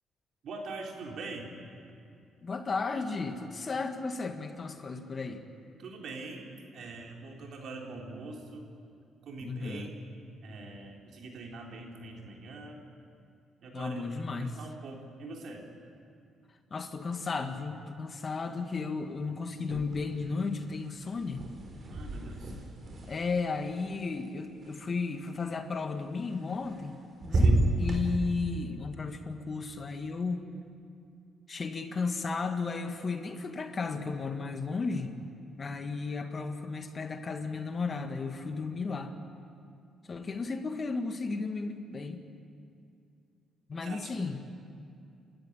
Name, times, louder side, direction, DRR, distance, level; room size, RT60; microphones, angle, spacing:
voice 1, 0.4-1.5 2.9-3.1 5.8-8.7 9.2-9.9 10.4-12.8 13.6-15.6 21.9-22.5 27.3-27.7 43.8-44.1, right 3 dB, 65° right, 0 dB, 3.9 m, -43 dB
voice 2, 2.4-5.4 9.4-9.9 13.7-14.6 16.7-21.4 23.1-27.0 27.2-30.5 31.5-35.1 35.6-39.1 40.0-42.2 43.7-44.4, left 4 dB, 40° left, 6 dB, 1.8 m, -34 dB
sound 1, 19.6-20.3 20.6-24.7 26.3-26.9 27.2-28.0, right 2 dB, 45° right, 4.4 m, -31 dB
29.5 x 13.5 x 8.9 m, 2.5 s
cardioid pair, 90°, 0 cm